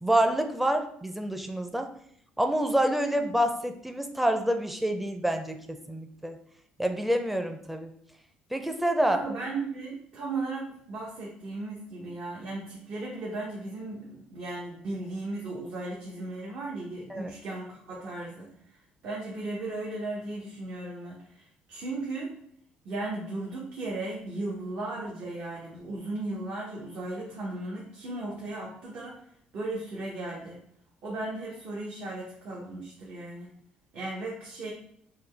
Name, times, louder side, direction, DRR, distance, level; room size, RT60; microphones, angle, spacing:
voice 1, 0.0-1.9 2.4-6.4 6.8-7.9 8.5-9.2 17.1-17.3, right 1 dB, 5° right, 6 dB, 0.5 m, -27 dB
voice 2, 9.0-18.5 19.0-22.3 22.8-29.2 29.5-30.6 31.0-33.5 33.9-34.7, right 2 dB, 65° right, -4 dB, 0.8 m, -36 dB
3.8 x 2.3 x 3.3 m, 0.68 s
supercardioid pair, 80°, 3 cm